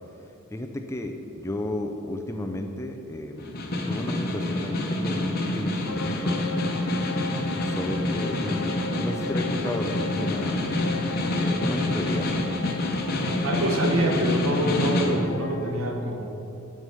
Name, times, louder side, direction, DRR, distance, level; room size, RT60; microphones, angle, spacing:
voice 1, 0.5-3.5 3.9-6.3 7.6-8.7 9.0-10.6 11.4-12.3, left 1 dB, 15° left, 4 dB, 0.5 m, -33 dB
Snare drum, 3.4-15.2, left 1 dB, 45° left, 1.0 m, -27 dB
sound 1, 5.9-15.7, left 3 dB, 65° left, 0.5 m, -37 dB
voice 2, 13.4-16.3, right 1 dB, 80° right, 2 dB, 1.2 m, -26 dB
9.5 x 6.6 x 5.4 m, 2.8 s
head